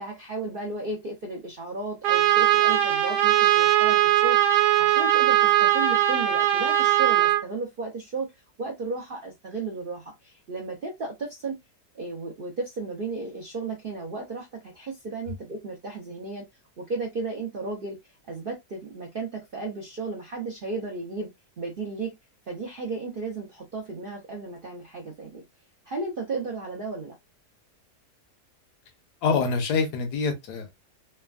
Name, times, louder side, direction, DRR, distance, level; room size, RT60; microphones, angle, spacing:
voice 1, 0.0-8.3 8.6-11.6 11.9-16.5 16.8-21.3 21.6-22.1 22.5-25.4 25.9-27.1, right 3 dB, 60° right, 0.5 m, -34 dB
Trumpet, 2.0-7.4, right 12 dB, 85° right, 1.2 m, -20 dB
voice 2, 29.2-30.7, left 5 dB, 75° left, 1.3 m, -25 dB
3.4 x 2.1 x 2.3 m
omnidirectional pair, 1.7 m